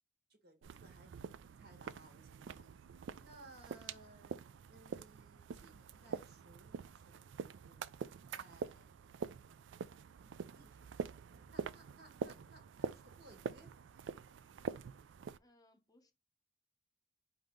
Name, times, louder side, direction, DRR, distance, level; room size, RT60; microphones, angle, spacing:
voice 1, 0.3-2.7 3.2-4.4 4.7-9.0 9.9-13.7, right 1 dB, 60° right, 1.7 m, -62 dB
sound 1, 0.6-15.4, right 6 dB, 75° right, 0.3 m, -46 dB
voice 2, 15.4-16.1, left 1 dB, 20° left, 0.7 m, -68 dB
5.3 x 2.7 x 3.6 m
head